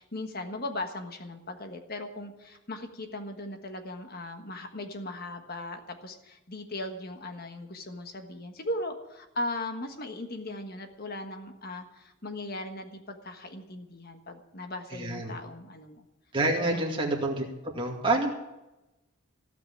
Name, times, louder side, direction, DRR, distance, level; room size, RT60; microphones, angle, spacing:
voice 1, 0.0-16.0 16.7-17.1, left 1 dB, 45° left, 6 dB, 1.4 m, -38 dB
voice 2, 14.9-15.4 16.3-17.4 17.7-18.3, right 2 dB, 25° right, -1 dB, 2.2 m, -27 dB
16.0 x 6.0 x 9.9 m, 0.98 s
head